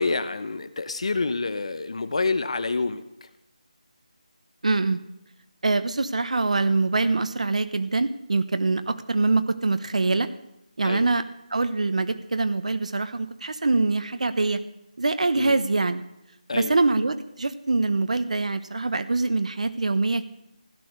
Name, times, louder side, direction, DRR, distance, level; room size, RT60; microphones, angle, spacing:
voice 1, 0.0-3.3 10.8-11.1 15.3-15.6 16.5-16.7, left 3 dB, 50° left, 12 dB, 0.9 m, -28 dB
voice 2, 4.6-5.0 5.6-10.3 10.8-11.2 11.5-14.6 15.0-16.0 16.5-20.3, right 3 dB, 60° right, 12 dB, 1.0 m, -24 dB
16.0 x 10.0 x 6.7 m, 0.84 s
figure-of-eight pair, 170°, 4 cm